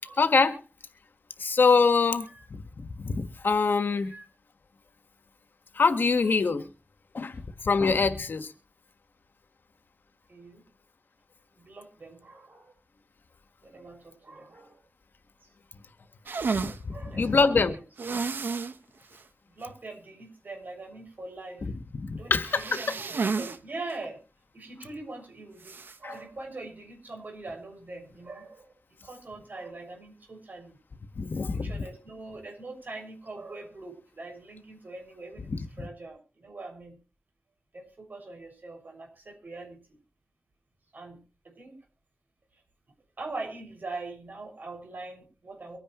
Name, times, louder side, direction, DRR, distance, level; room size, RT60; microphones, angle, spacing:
voice 1, 0.2-0.6 1.4-4.1 5.8-6.7 7.1-8.5 16.8-17.7 22.0-22.8 26.0-26.2 31.2-31.7, left 4 dB, 75° left, 1.6 m, -24 dB
voice 2, 10.3-10.6 11.5-12.7 13.6-14.8 15.4-15.5 16.9-17.8 19.5-21.7 22.2-24.2 24.5-28.7 29.0-30.8 31.5-37.0 37.7-39.8 40.9-41.8 42.5-42.6 43.2-45.8, right 2 dB, 60° right, 6.5 m, -42 dB
sound 1, 16.3-16.8 18.0-18.8 19.1-19.2 19.6-19.7 22.4-23.6 23.9-24.0 25.6-26.0, right 4 dB, 85° right, 1.1 m, -31 dB
24.0 x 10.0 x 3.1 m
wide cardioid pair, 100°, 3 cm